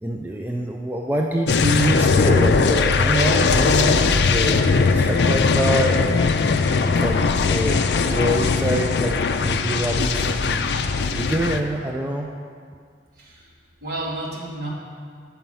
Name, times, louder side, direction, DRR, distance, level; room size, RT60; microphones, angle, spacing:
voice 1, 0.0-6.3 6.8-10.7 11.1-12.3, right 1 dB, 10° right, 0 dB, 0.3 m, -25 dB
sound 1, 1.5-11.6, left 4 dB, 65° left, 0.4 m, -19 dB
voice 2, 13.2-13.5 13.8-14.7, right 1 dB, 60° right, -4 dB, 1.6 m, -31 dB
7.5 x 5.7 x 5.5 m, 2.1 s
head